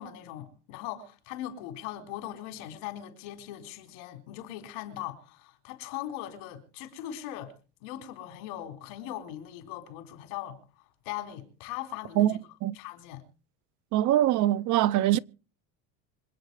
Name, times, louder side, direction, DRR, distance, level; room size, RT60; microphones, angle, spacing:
voice 1, 0.0-7.5 7.8-10.6 11.0-12.4 12.7-13.2, left 12 dB, 75° left, 4.3 m, -40 dB
voice 2, 12.2-12.8 13.9-15.2, right 13 dB, 50° right, 0.7 m, -23 dB
26.0 x 8.8 x 4.8 m
cardioid pair, 135°, 38 cm